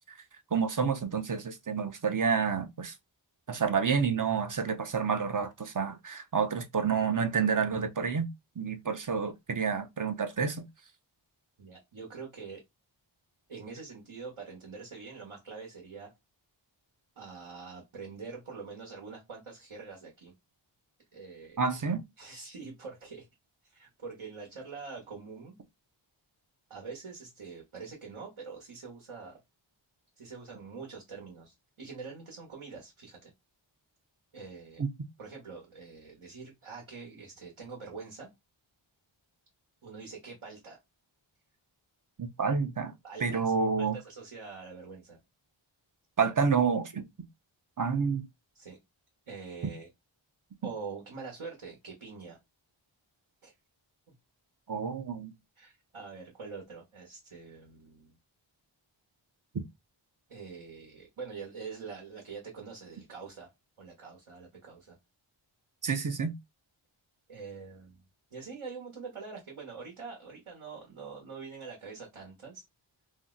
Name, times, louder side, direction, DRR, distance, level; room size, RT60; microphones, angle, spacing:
voice 1, 0.5-2.9 3.5-8.3 8.6-10.6 21.6-22.0 34.8-34.9 42.2-42.9 43.2-44.0 46.2-47.0 47.8-48.2 54.7-55.3 65.8-66.3, right 6 dB, 40° right, 0.5 m, -29 dB
voice 2, 11.6-12.6 13.5-16.1 17.2-20.3 21.1-21.6 22.2-23.3 23.6-25.6 26.7-29.4 30.2-33.3 34.3-34.8 35.2-38.3 39.8-40.8 43.0-45.2 46.2-46.3 48.5-48.8 49.3-49.9 50.6-52.4 53.4-53.5 54.1-54.2 55.6-58.1 60.3-63.5 63.8-65.0 67.3-68.0 68.3-72.6, right 5 dB, 80° right, 1.0 m, -45 dB
2.6 x 2.0 x 3.6 m
wide cardioid pair, 45°, 48 cm